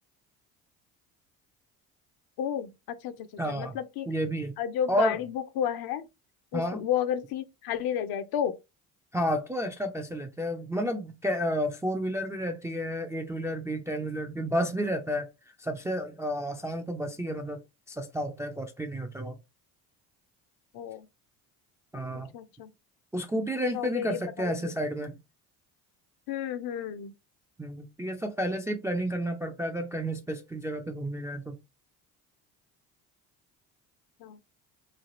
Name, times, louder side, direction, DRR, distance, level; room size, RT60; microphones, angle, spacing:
voice 1, 2.4-4.1 4.6-6.1 6.5-8.6 20.7-21.1 22.3-22.7 23.7-24.6 26.3-27.1 34.2-34.4, left 9 dB, 55° left, 0.6 m, -32 dB
voice 2, 3.4-3.8 4.1-4.5 4.9-5.2 6.5-6.8 9.1-15.3 15.6-17.6 17.9-19.4 21.9-22.3 23.1-25.2 27.6-31.6, equal, 5° right, 0.3 m, -31 dB
3.2 x 2.3 x 2.5 m
hypercardioid pair, 70°, 44 cm